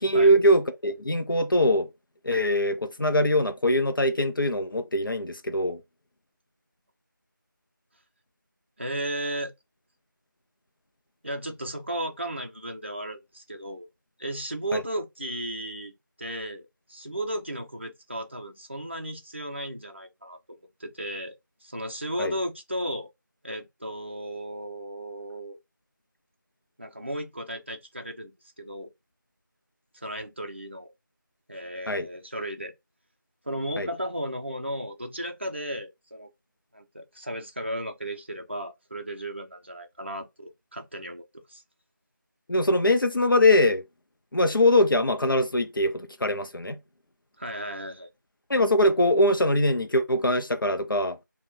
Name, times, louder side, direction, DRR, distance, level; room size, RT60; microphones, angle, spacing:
voice 1, 0.0-1.9 2.2-5.8 14.7-14.8 22.2-22.3 31.9-32.1 33.8-33.9 42.5-43.8 44.3-46.8 48.5-51.2, left 1 dB, 85° left, 0.6 m, -22 dB
voice 2, 8.8-9.5 11.2-13.9 14.2-15.9 16.2-16.6 16.9-20.4 20.8-21.3 21.6-23.1 23.4-25.6 26.8-28.9 29.9-30.9 31.5-32.7 33.4-36.3 36.7-41.6 47.4-48.1, right 1 dB, 35° right, 0.5 m, -35 dB
2.6 x 2.2 x 3.3 m
figure-of-eight pair, 175°, 11 cm